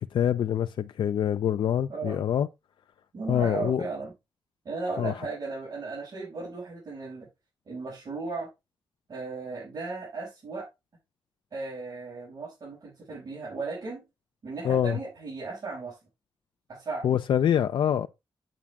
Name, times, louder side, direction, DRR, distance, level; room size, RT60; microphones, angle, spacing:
voice 1, 0.0-2.5 3.3-3.8 5.0-5.1 14.6-15.0 17.0-18.1, left 9 dB, 80° left, 0.5 m, -25 dB
voice 2, 1.9-2.2 3.1-4.1 4.6-7.3 7.7-8.5 9.1-10.7 11.5-14.0 14.4-16.0 16.7-17.2, right 3 dB, 45° right, 5.9 m, -36 dB
8.8 x 8.7 x 3.6 m
wide cardioid pair, 160°, 8 cm